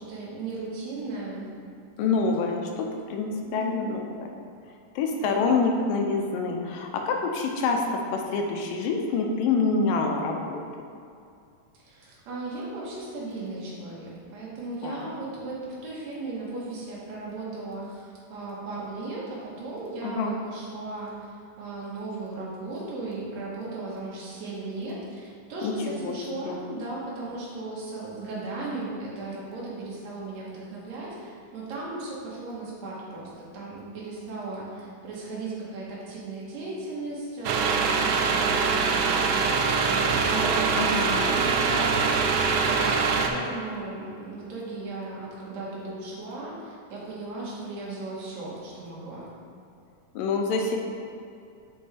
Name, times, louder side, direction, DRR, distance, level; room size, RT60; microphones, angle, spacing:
voice 1, 0.0-1.5 2.0-2.3 3.4-3.9 5.2-5.5 11.7-42.2 42.5-49.3, right 2 dB, 60° right, -6 dB, 2.4 m, -36 dB
voice 2, 2.0-4.3 5.0-10.6 14.8-15.1 20.0-20.3 25.6-26.2 26.5-26.6 40.8-41.2 50.2-50.8, left 4 dB, 85° left, 2 dB, 2.4 m, -26 dB
sound 1, 37.5-43.3, right 5 dB, 80° right, 1.9 m, -23 dB
6.8 x 5.4 x 3.4 m, 2.4 s
omnidirectional pair, 3.8 m